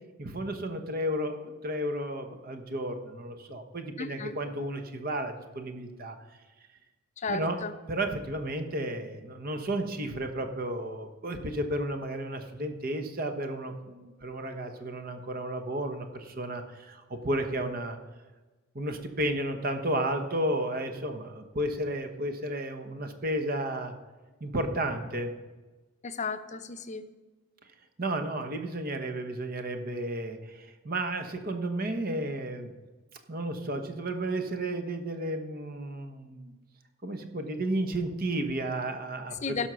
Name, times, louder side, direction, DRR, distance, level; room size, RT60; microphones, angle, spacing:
voice 1, 0.2-6.2 7.3-7.6 7.9-18.0 18.7-23.9 24.4-25.3 28.0-32.7 33.3-36.5 37.0-39.7, right 1 dB, 45° right, 6 dB, 1.0 m, -32 dB
voice 2, 4.0-4.3 7.2-7.7 26.0-27.0 39.4-39.7, left 4 dB, 35° left, 10 dB, 0.7 m, -34 dB
16.0 x 5.7 x 6.2 m, 1.2 s
head